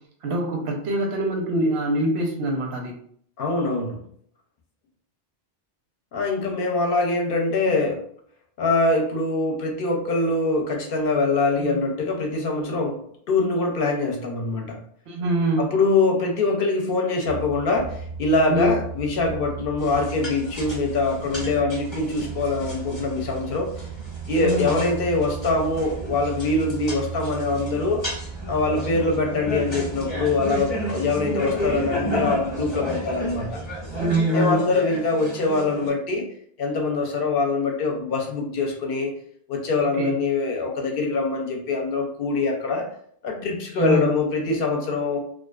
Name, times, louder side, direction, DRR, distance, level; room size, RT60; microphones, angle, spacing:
voice 1, 0.2-2.9 11.6-11.8 15.1-15.7 18.5-18.8 24.4-24.8 33.9-34.7 39.9-40.2 43.8-44.2, right 1 dB, 85° right, 1 dB, 0.9 m, -24 dB
voice 2, 3.4-4.0 6.1-8.0 8.6-13.0 13.3-14.8 15.6-23.7 24.3-28.0 28.5-33.6 34.3-36.3 36.6-39.1 39.5-42.9 43.2-45.2, left 3 dB, 65° left, 1 dB, 0.7 m, -23 dB
sound 1, 17.3-34.2, right 6 dB, 50° right, 0.5 m, -36 dB
sound 2, 19.8-35.9, equal, 30° left, 0.7 m, -33 dB
2.4 x 2.3 x 2.2 m, 0.63 s
omnidirectional pair, 1.1 m